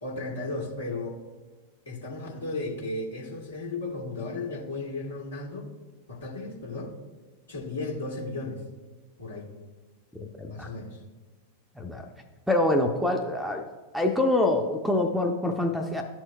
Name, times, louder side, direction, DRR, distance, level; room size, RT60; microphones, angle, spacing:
voice 1, 0.0-1.2 1.8-5.7 6.1-6.9 7.5-8.6 9.2-9.5 10.4-11.0, left 2 dB, 70° left, -2 dB, 1.5 m, -35 dB
voice 2, 10.2-10.7 11.8-12.1 12.5-13.6 13.9-16.0, left 2 dB, ahead, 4 dB, 0.5 m, -25 dB
12.5 x 4.4 x 2.2 m, 1.3 s
figure-of-eight pair, 90°, 0 cm